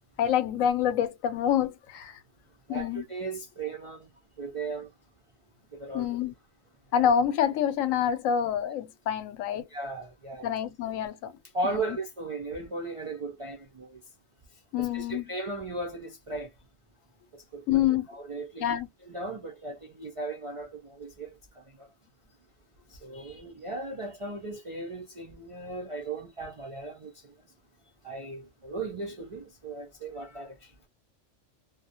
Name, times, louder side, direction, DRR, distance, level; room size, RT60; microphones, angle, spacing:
voice 1, 0.2-2.2 2.7-3.0 5.9-6.3 6.9-9.7 10.4-11.3 11.6-12.0 14.7-15.3 17.7-18.1 18.6-18.9, left 9 dB, 90° left, 1.0 m, -27 dB
voice 2, 2.7-4.1 4.4-4.9 5.7-6.1 9.7-10.5 11.5-14.0 14.8-16.5 17.3-17.6 18.1-21.3 21.6-21.9 22.9-27.3 28.0-30.7, right 3 dB, 55° right, 0.3 m, -37 dB
2.3 x 2.1 x 2.6 m
omnidirectional pair, 1.3 m